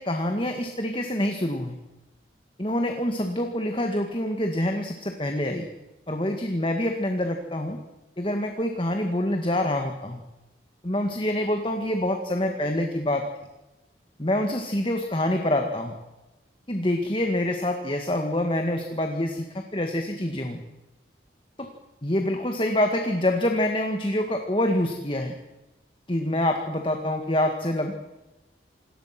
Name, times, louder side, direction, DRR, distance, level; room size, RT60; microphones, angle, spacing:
voice 1, 0.0-1.8 2.6-5.7 6.1-7.8 8.2-10.2 10.8-13.2 14.2-15.9 16.7-20.6 21.6-21.7 22.0-25.3 26.1-27.9, left 1 dB, 25° left, 4 dB, 1.9 m, -26 dB
27.5 x 19.5 x 6.1 m, 1.0 s
head